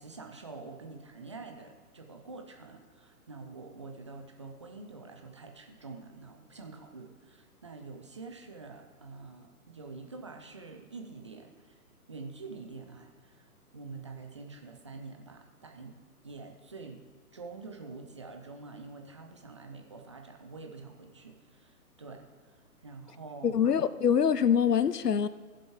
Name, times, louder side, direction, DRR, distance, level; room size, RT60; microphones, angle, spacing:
voice 1, 0.0-11.8 12.1-15.9 16.2-17.0 17.3-22.6 22.8-23.6, right 3 dB, 20° right, 4 dB, 0.5 m, -46 dB
voice 2, 23.4-25.3, left 8 dB, 90° left, 15 dB, 0.5 m, -24 dB
15.5 x 7.5 x 3.5 m, 1.5 s
figure-of-eight pair, 125°, 46 cm